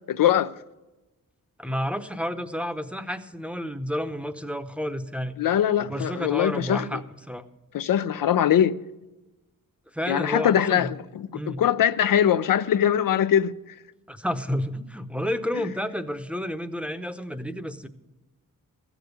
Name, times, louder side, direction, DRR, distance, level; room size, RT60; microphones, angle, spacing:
voice 1, 0.1-0.5 5.4-7.0 7.7-8.7 10.1-13.5, left 10 dB, 75° left, 0.6 m, -22 dB
voice 2, 1.6-5.3 5.8-7.4 9.9-10.9 11.3-11.6 14.1-17.9, equal, 5° right, 0.8 m, -30 dB
15.0 x 7.1 x 8.0 m
wide cardioid pair, 105°, 33 cm